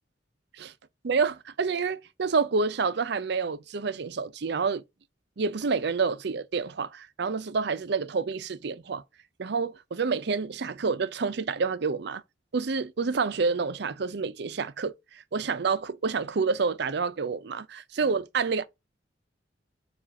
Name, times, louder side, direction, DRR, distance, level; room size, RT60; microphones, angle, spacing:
voice 1, 1.0-4.8 5.4-9.0 9.4-12.2 12.5-18.6, right 5 dB, 65° right, 0.6 m, -28 dB
7.2 x 2.5 x 5.6 m
head